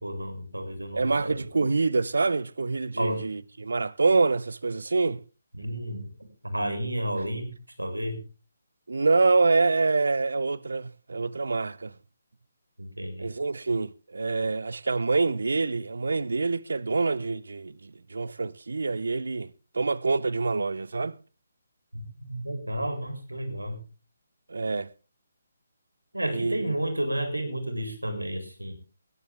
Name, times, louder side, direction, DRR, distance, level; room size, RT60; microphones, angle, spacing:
voice 1, 0.0-1.5 3.0-3.2 5.5-6.1 6.4-8.2 12.8-13.3 21.9-23.8 26.1-28.7, right 1 dB, 90° right, 3.5 m, -31 dB
voice 2, 0.9-5.2 8.9-11.9 13.2-19.5 19.7-21.2 24.5-24.9 26.3-26.7, right 3 dB, 70° right, 0.7 m, -26 dB
20.0 x 10.0 x 3.5 m
figure-of-eight pair, 145°, 0 cm